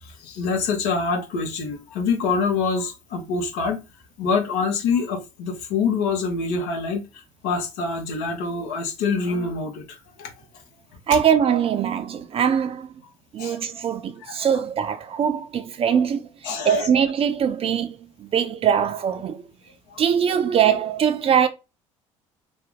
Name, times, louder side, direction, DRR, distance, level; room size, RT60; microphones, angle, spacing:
voice 1, 0.0-3.8 4.2-10.3 11.1-11.2 13.4-13.6 14.3-14.5 16.4-16.9 19.9-20.0, left 4 dB, 60° left, 1.0 m, -26 dB
voice 2, 11.1-12.9 13.3-16.3 16.6-19.4 20.0-21.5, right 8 dB, 35° right, 0.5 m, -22 dB
2.7 x 2.1 x 3.5 m
figure-of-eight pair, 60°, 17 cm